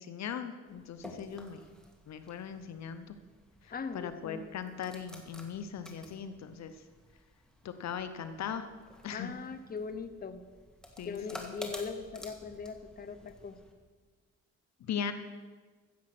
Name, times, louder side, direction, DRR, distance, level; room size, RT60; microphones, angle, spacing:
voice 1, 0.0-1.6 2.1-3.2 3.6-6.7 7.6-8.7 9.0-9.3 11.0-11.5 14.8-15.1, left 7 dB, 60° left, 10 dB, 0.9 m, -39 dB
sound 1, 0.7-13.7, equal, ahead, 2.0 m, -51 dB
voice 2, 3.7-4.5 9.1-10.4 11.0-13.6, left 5 dB, 30° left, 10 dB, 0.9 m, -40 dB
15.5 x 7.5 x 6.0 m, 1.4 s
cardioid pair, 90°, 30 cm